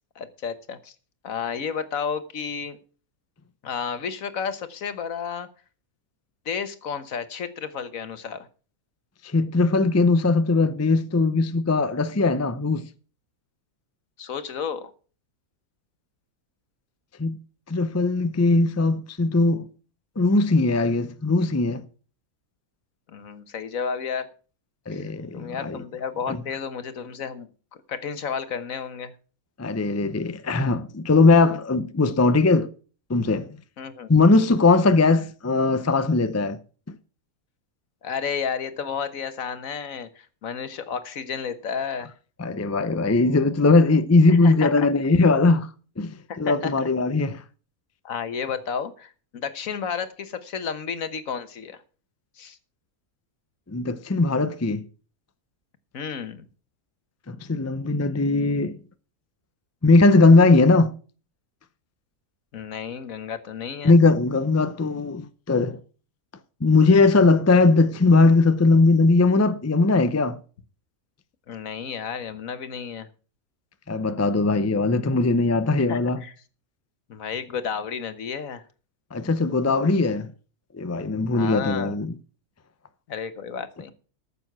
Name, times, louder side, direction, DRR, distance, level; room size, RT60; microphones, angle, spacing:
voice 1, 0.1-0.9 1.2-2.8 3.6-5.5 6.4-8.5 14.2-14.9 23.1-24.3 24.9-29.1 33.8-34.1 38.0-42.1 44.3-44.9 46.3-46.7 48.0-49.1 49.4-51.8 52.4-52.6 55.9-56.4 62.5-64.0 71.5-73.1 75.8-76.3 77.1-78.6 81.3-82.0 83.1-83.9, left 6 dB, 70° left, 1.5 m, -32 dB
voice 2, 9.2-12.8 17.2-17.4 17.7-19.7 20.2-21.9 24.9-25.8 26.3-26.4 29.6-32.7 33.1-33.5 34.1-36.6 42.4-45.7 46.0-47.4 53.7-54.8 57.3-58.8 59.8-60.9 63.8-65.8 66.6-70.4 73.9-76.2 79.1-80.3 80.7-82.2, left 3 dB, 20° left, 0.4 m, -19 dB
14.0 x 7.0 x 6.0 m
omnidirectional pair, 1.5 m